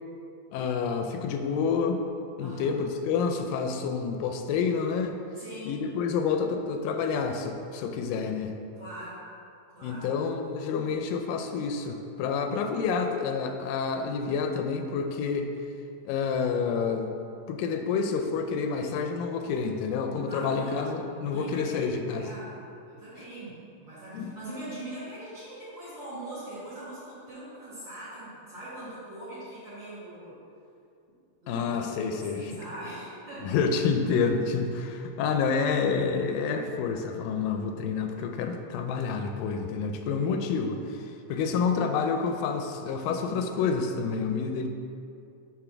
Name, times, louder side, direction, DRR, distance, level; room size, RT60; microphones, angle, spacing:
voice 1, 0.5-2.0 2.4-5.2 5.7-8.5 9.8-15.5 16.1-22.3 24.1-24.3 31.5-32.4 33.4-44.7, left 5 dB, 85° left, 5 dB, 2.2 m, -28 dB
voice 2, 2.4-2.8 5.4-5.8 8.8-9.2 9.7-10.1 20.3-22.6 22.9-30.4 31.4-31.7 32.0-33.5 40.0-40.7, right 1 dB, 45° right, -10 dB, 1.8 m, -42 dB
6.8 x 3.6 x 5.8 m, 2.5 s
omnidirectional pair, 4.0 m